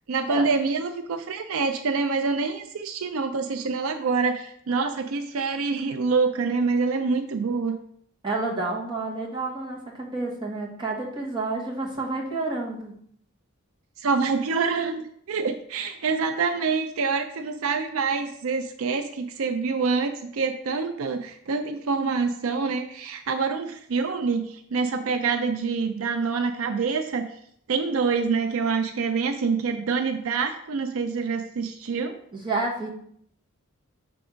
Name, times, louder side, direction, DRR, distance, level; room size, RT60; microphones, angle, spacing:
voice 1, 0.1-7.8 14.0-27.3 27.7-32.2, right 4 dB, 75° right, 7 dB, 0.5 m, -26 dB
voice 2, 8.2-12.9 32.3-32.9, right 3 dB, 20° right, -3 dB, 1.3 m, -29 dB
6.1 x 3.5 x 5.0 m, 0.66 s
head